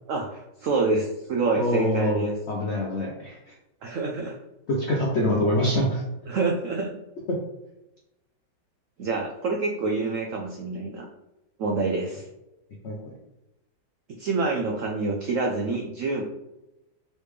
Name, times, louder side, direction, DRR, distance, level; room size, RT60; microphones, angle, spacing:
voice 1, 0.1-2.3 3.8-4.4 6.3-6.9 9.0-11.1 11.6-12.2 14.2-16.2, right 3 dB, 80° right, 1 dB, 0.7 m, -27 dB
voice 2, 1.6-3.5 4.7-6.0 7.3-7.4 12.8-13.0, left 1 dB, 65° left, -2 dB, 0.6 m, -25 dB
4.1 x 3.3 x 3.2 m, 0.95 s
omnidirectional pair, 1.9 m